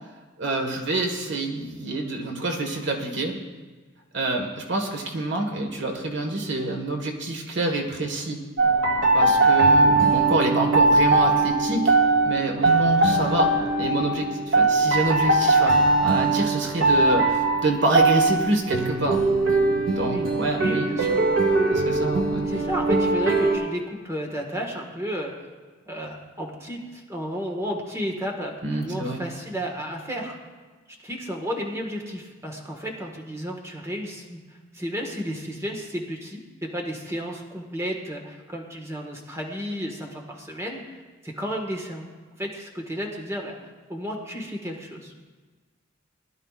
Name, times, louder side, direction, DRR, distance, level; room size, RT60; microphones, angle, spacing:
voice 1, 0.4-3.4 4.1-8.4 9.1-11.9 12.2-19.2 20.0-20.9 21.7-22.5 28.6-29.3, right 2 dB, 65° right, 3 dB, 1.5 m, -27 dB
sound 1, 8.6-23.5, right 3 dB, 80° right, 1.6 m, -20 dB
voice 2, 20.6-21.2 22.4-25.3 25.9-30.4 31.0-34.4 34.7-42.1 42.4-43.6 43.9-45.3, equal, 15° right, 1 dB, 1.6 m, -32 dB
21.0 x 12.0 x 2.5 m, 1.4 s
head